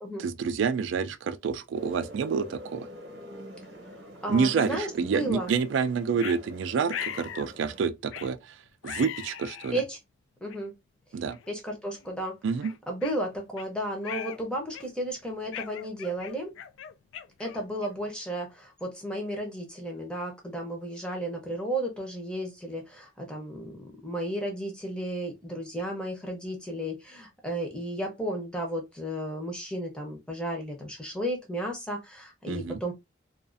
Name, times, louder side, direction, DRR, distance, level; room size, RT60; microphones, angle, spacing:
voice 1, 0.2-2.9 4.3-8.5 8.8-9.8 11.1-11.4 12.4-12.7 32.5-32.8, right 5 dB, 80° right, 0.3 m, -28 dB
sound 1, 1.7-7.8, equal, 60° right, 0.8 m, -45 dB
voice 2, 3.8-5.5 9.7-10.0 10.4-10.7 11.5-12.4 12.9-16.5 17.4-32.9, right 1 dB, 5° left, 0.6 m, -33 dB
sound 2, 4.6-4.7 5.5-5.7 6.2-6.4 6.9-7.5 8.1-8.3 8.8-9.8 10.5-10.6 11.3-11.5 11.9-12.1 12.6-13.7 14.0-14.4 14.7-15.1 15.5-18.1, left 9 dB, 85° left, 0.3 m, -39 dB
2.4 x 2.4 x 2.4 m
head